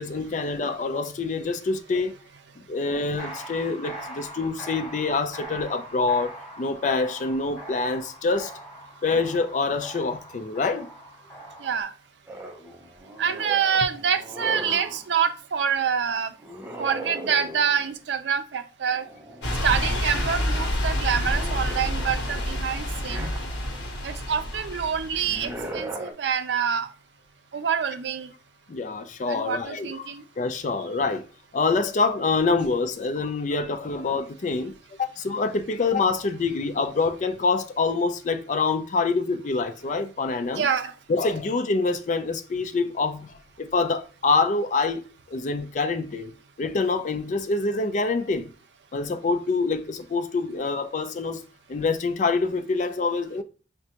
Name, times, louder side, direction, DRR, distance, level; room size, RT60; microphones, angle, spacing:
voice 1, 0.0-2.2 2.7-6.3 6.6-8.5 9.0-10.9 23.2-23.3 28.7-31.2 31.5-40.7 41.1-45.0 45.3-46.3 46.6-48.5 48.9-51.4 51.7-53.4, left 4 dB, 45° left, 0.4 m, -26 dB
sound 1, 3.2-11.8, right 1 dB, 5° left, 1.7 m, -41 dB
voice 2, 11.6-11.9 13.2-16.3 16.8-19.1 19.6-23.3 24.0-26.9 27.5-28.3 29.3-30.2 40.5-40.9, right 7 dB, 80° right, 0.5 m, -26 dB
sound 2, 12.3-15.1 16.4-18.0 18.9-19.9 20.3-23.8 25.1-26.1, right 1 dB, 10° right, 0.5 m, -39 dB
sound 3, 19.4-25.6, left 1 dB, 90° left, 1.0 m, -28 dB
6.0 x 2.2 x 2.8 m
head